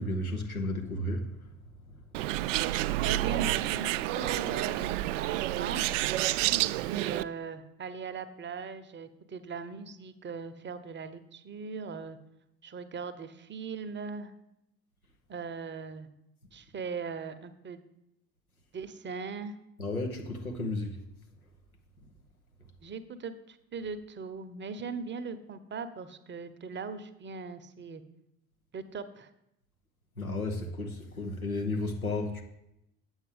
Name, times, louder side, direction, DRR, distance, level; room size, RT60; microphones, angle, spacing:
voice 1, 0.0-1.5 19.8-21.0 30.2-32.4, left 2 dB, 90° left, 1.0 m, -33 dB
Bird, 2.1-7.2, right 16 dB, 60° right, 0.5 m, -29 dB
voice 2, 3.0-5.8 6.7-12.2 12.6-14.3 15.3-16.1 16.5-17.8 18.7-19.5 22.8-28.0 28.7-29.3, right 5 dB, 25° right, 0.8 m, -39 dB
8.1 x 7.4 x 5.0 m
figure-of-eight pair, 55°, 42 cm